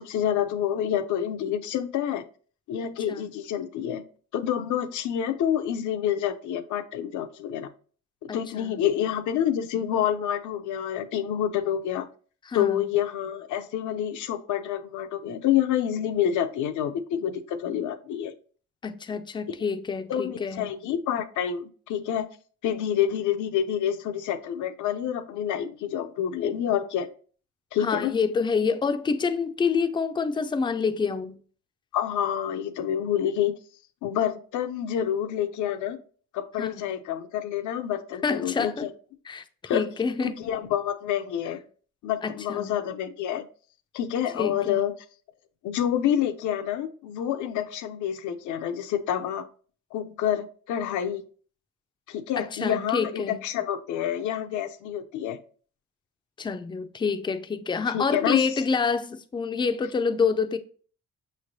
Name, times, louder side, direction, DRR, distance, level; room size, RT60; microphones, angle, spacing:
voice 1, 0.0-2.2 2.7-4.0 4.3-7.7 8.2-12.1 12.5-18.3 20.1-22.3 22.6-27.1 27.7-28.1 31.9-33.5 34.0-36.0 36.3-38.9 39.7-39.9 40.2-41.6 42.0-43.4 43.9-44.9 45.6-49.5 49.9-51.2 52.1-55.4 57.9-58.5, left 10 dB, 75° left, 0.5 m, -28 dB
voice 2, 8.3-8.8 12.5-12.8 18.8-20.7 27.8-31.4 36.6-36.9 38.2-38.9 39.3-39.4 39.7-40.3 42.2-42.7 44.3-44.8 52.4-53.4 56.4-60.6, left 5 dB, 15° left, 0.3 m, -27 dB
5.8 x 3.2 x 2.6 m
cardioid pair, 90°, 30 cm